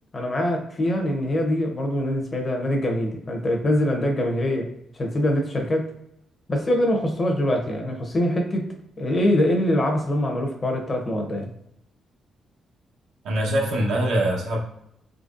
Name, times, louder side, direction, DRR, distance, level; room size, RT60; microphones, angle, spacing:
voice 1, 0.1-5.9 6.5-8.7 9.0-11.5, left 1 dB, 30° left, 2 dB, 0.7 m, -24 dB
voice 2, 13.2-14.6, right 1 dB, 85° right, -1 dB, 0.9 m, -23 dB
3.9 x 3.0 x 2.5 m, 0.77 s
cardioid pair, 140°, 0 cm